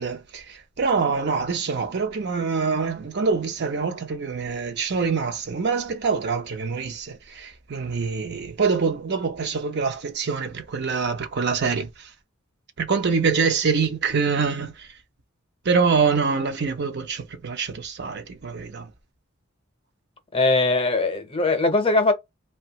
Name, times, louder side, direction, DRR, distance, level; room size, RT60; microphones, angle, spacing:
voice 1, 0.0-12.1 12.8-14.9 15.6-18.9, right 5 dB, 55° right, 0.6 m, -25 dB
voice 2, 20.3-22.1, left 3 dB, 25° left, 0.7 m, -20 dB
2.9 x 2.2 x 2.8 m
head